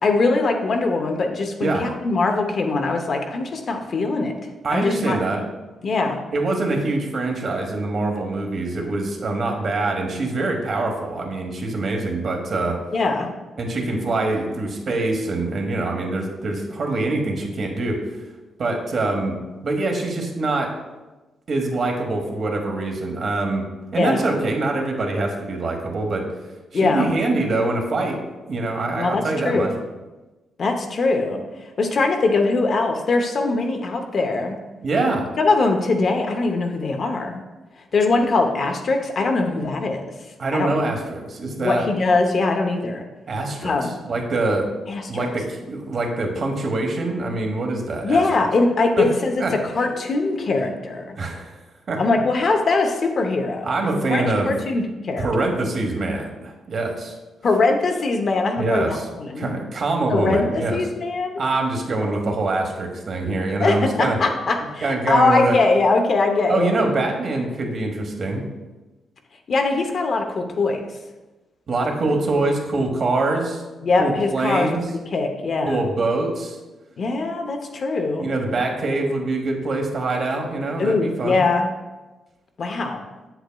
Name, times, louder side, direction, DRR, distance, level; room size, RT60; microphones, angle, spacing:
voice 1, 0.0-4.3 4.7-5.2 5.8-6.2 12.9-13.3 23.9-24.3 26.7-27.1 28.9-29.8 30.6-31.4 31.8-34.6 35.4-37.4 37.9-40.0 40.5-40.9 41.6-43.0 43.6-43.9 44.9-45.3 48.0-51.2 52.0-53.7 54.1-55.3 57.4-59.5 60.1-61.4 63.6-66.7 69.5-70.8 73.8-75.8 77.0-78.3 80.8-81.7 82.6-83.0, left 3 dB, 40° left, 4 dB, 0.7 m, -22 dB
voice 2, 4.6-5.4 6.3-12.8 13.6-18.2 18.6-20.7 21.5-23.7 23.9-26.3 26.7-28.2 28.5-29.7 34.8-35.2 40.4-41.9 43.3-44.7 45.1-48.2 49.0-49.1 49.4-49.5 51.2-51.6 51.9-52.0 53.6-54.5 55.2-57.2 58.6-59.1 59.4-60.8 61.4-64.2 64.8-65.6 66.5-68.4 71.7-73.6 74.0-74.8 75.6-76.6 78.2-81.4, right 2 dB, 45° right, 2 dB, 1.1 m, -24 dB
7.9 x 7.9 x 2.3 m, 1.1 s
wide cardioid pair, 155°, 0 cm